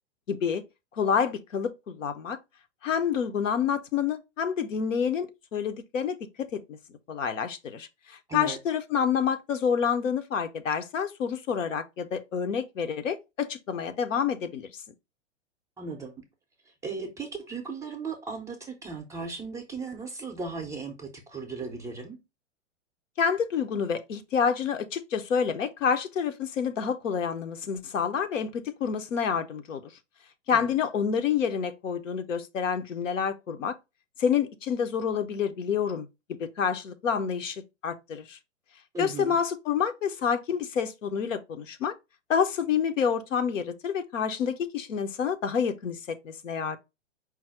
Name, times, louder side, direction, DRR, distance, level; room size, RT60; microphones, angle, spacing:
voice 1, 0.3-0.6 1.0-2.4 2.8-6.8 7.1-14.7 23.2-29.9 30.5-33.8 34.2-38.4 39.0-41.9 42.3-46.8, left 7 dB, 85° left, 0.7 m, -28 dB
voice 2, 15.8-16.1 16.8-22.2 30.5-30.7 38.9-39.4, right 4 dB, 10° right, 0.4 m, -36 dB
4.7 x 2.0 x 4.4 m
hypercardioid pair, 120°, 38 cm